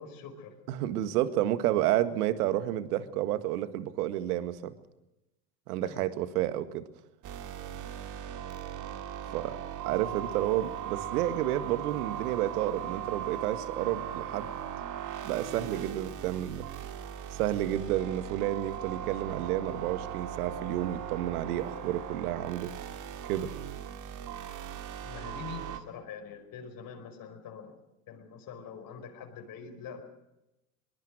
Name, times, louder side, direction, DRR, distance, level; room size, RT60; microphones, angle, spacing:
voice 1, 0.0-0.5 5.8-6.0 25.0-30.0, left 6 dB, 45° left, 5 dB, 4.9 m, -44 dB
voice 2, 0.7-4.7 5.7-6.9 9.3-9.6 9.8-14.5 15.2-16.7 17.3-22.7 23.2-23.5, right 13 dB, 65° right, 12 dB, 1.9 m, -30 dB
sound 1, 7.2-25.8, right 9 dB, 40° right, 2.3 m, -39 dB
22.5 x 21.5 x 6.3 m, 0.92 s
hypercardioid pair, 90°, 48 cm